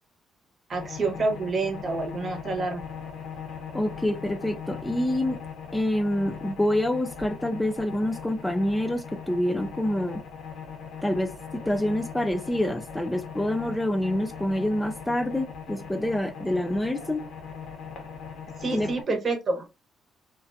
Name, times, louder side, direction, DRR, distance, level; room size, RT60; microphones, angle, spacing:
sound 1, 0.7-19.0, left 6 dB, 85° left, 0.7 m, -40 dB
voice 1, 0.7-2.8 18.6-19.6, right 3 dB, 45° right, 0.8 m, -28 dB
voice 2, 3.7-5.4 5.7-10.2 11.0-17.3 18.7-18.9, left 1 dB, 10° left, 0.3 m, -27 dB
2.4 x 2.2 x 2.5 m
cardioid pair, 90°, 0 cm